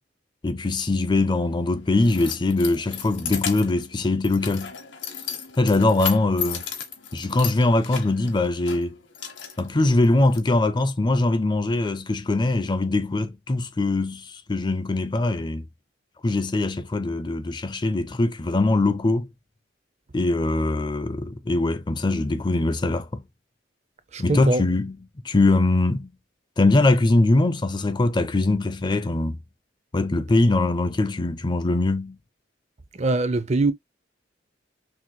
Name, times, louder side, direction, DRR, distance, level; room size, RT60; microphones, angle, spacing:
voice 1, 0.4-4.7 5.6-6.7 7.1-9.0 9.6-15.7 16.2-19.3 20.1-23.2 24.2-25.0 25.2-26.1 26.6-29.4 29.9-32.2, left 2 dB, 25° left, 0.4 m, -22 dB
Keys jangling, 1.3-10.4, left 8 dB, 80° left, 1.2 m, -35 dB
voice 2, 24.1-24.6 32.9-33.7, right 2 dB, 35° right, 0.6 m, -22 dB
6.1 x 2.9 x 2.2 m
head